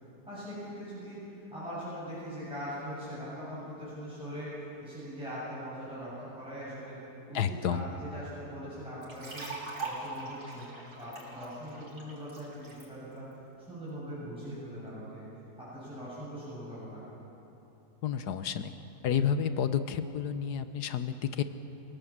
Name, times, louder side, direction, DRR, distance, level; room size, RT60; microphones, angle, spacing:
voice 1, 0.3-7.0 7.3-10.7 11.0-13.3 13.7-15.2 15.6-17.0, equal, 5° right, -11 dB, 7.7 m, -41 dB
voice 2, 7.3-7.8 18.0-18.7 19.0-21.4, left 8 dB, 80° left, 10 dB, 1.5 m, -30 dB
sound 1, 9.0-12.9, right 3 dB, 75° right, 4.5 m, -41 dB
30.0 x 17.0 x 7.5 m, 2.9 s
omnidirectional pair, 1.7 m